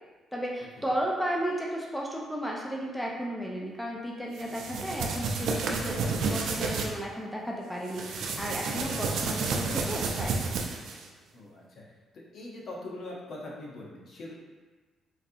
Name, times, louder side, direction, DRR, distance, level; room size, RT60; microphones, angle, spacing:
voice 1, 0.3-10.3, equal, 5° left, -2 dB, 0.5 m, -34 dB
sound 1, 4.4-6.9 7.9-11.0, right 4 dB, 75° right, 0.4 m, -31 dB
voice 2, 11.3-11.8 12.3-14.3, left 2 dB, 60° left, -3 dB, 0.8 m, -42 dB
4.1 x 2.5 x 2.6 m, 1.3 s
cardioid pair, 90°, 0 cm